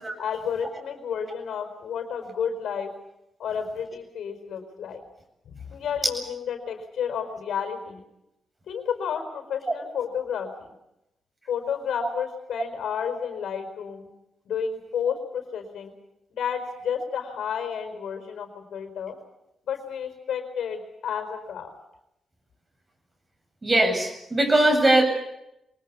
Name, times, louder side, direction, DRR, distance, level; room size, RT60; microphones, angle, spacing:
voice 1, 0.2-2.9 3.4-5.0 5.5-8.0 8.7-10.5 11.5-14.1 14.4-15.9 16.3-19.2 19.6-21.7, left 7 dB, 80° left, 7 dB, 4.8 m, -31 dB
voice 2, 23.6-25.0, right 1 dB, 30° right, 5 dB, 7.9 m, -20 dB
24.5 x 20.0 x 8.5 m, 0.86 s
supercardioid pair, 60°, 0 cm